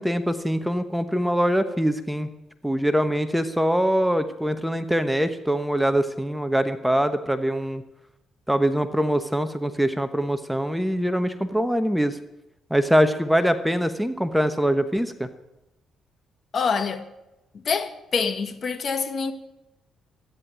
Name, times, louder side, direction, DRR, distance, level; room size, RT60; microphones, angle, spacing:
voice 1, 0.0-2.3 2.6-7.8 8.5-12.2 12.7-15.3, equal, ahead, 1.1 m, -23 dB
voice 2, 16.5-17.0 17.5-19.3, left 5 dB, 50° left, 1.5 m, -26 dB
14.0 x 10.0 x 9.1 m
cardioid pair, 90°, 0 cm